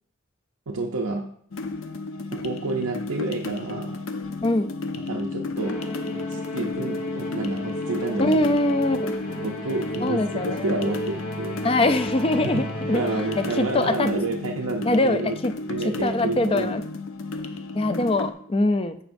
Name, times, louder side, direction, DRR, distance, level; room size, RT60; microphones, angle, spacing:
voice 1, 0.7-1.3 2.3-4.1 5.1-5.8 6.1-8.4 8.9-9.0 9.4-11.6 12.4-15.4 15.7-16.7, right 3 dB, 85° right, 1 dB, 0.7 m, -29 dB
sound 1, 1.5-18.3, left 3 dB, 70° left, 0.6 m, -33 dB
Musical instrument, 5.6-14.0, equal, 85° left, 3.3 m, -34 dB
voice 2, 8.2-9.1 10.0-10.7 11.6-13.0 13.4-14.1 14.9-15.5 16.0-16.8 17.7-19.0, left 2 dB, 25° left, 10 dB, 0.4 m, -23 dB
15.5 x 5.2 x 2.6 m, 0.67 s
head